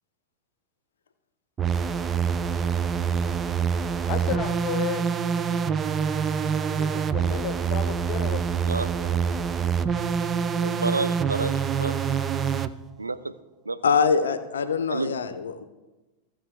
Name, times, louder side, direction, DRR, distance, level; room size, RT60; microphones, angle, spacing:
sound 1, 1.6-12.7, right 7 dB, 20° right, 0.4 m, -26 dB
voice 1, 4.1-5.0 6.6-8.7, left 10 dB, 40° left, 11 dB, 0.9 m, -33 dB
voice 2, 8.7-9.4 10.6-11.9 13.0-13.2 13.7-13.8 14.9-15.1, right 3 dB, 80° right, 12 dB, 0.4 m, -30 dB
voice 3, 13.8-15.6, left 6 dB, 65° left, 11 dB, 0.6 m, -24 dB
15.5 x 7.0 x 3.4 m, 1.1 s
figure-of-eight pair, 90°, 0 cm